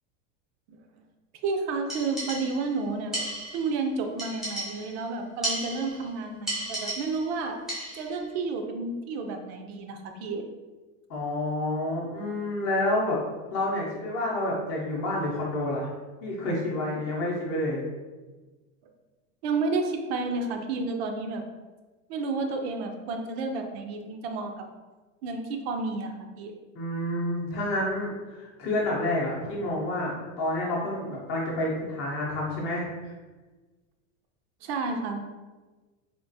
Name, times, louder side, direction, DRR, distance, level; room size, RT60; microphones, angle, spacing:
voice 1, 1.4-3.3 3.5-7.6 7.9-10.4 19.4-21.4 22.1-24.6 25.2-26.5 34.6-35.2, right 3 dB, 50° right, 4 dB, 0.5 m, -31 dB
sound 1, 1.9-2.7 3.1-3.8 4.2-5.0 5.4-6.1 6.5-7.3 7.7-8.2, right 1 dB, ahead, 0.5 m, -34 dB
voice 2, 11.1-13.2 13.5-15.9 16.2-17.8 26.7-32.9, left 1 dB, 30° left, -4 dB, 0.7 m, -29 dB
3.5 x 2.4 x 2.6 m, 1.3 s
supercardioid pair, 155°, 41 cm